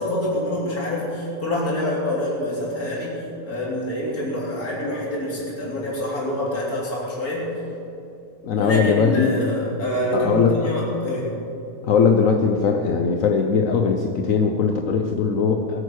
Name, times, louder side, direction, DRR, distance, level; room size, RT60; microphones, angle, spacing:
voice 1, 0.0-7.5 8.5-11.3, left 1 dB, 90° left, -5 dB, 3.9 m, -26 dB
voice 2, 8.4-9.3 10.1-10.6 11.8-15.8, left 5 dB, 65° left, 4 dB, 1.3 m, -20 dB
20.5 x 9.1 x 6.5 m, 2.7 s
omnidirectional pair, 1.5 m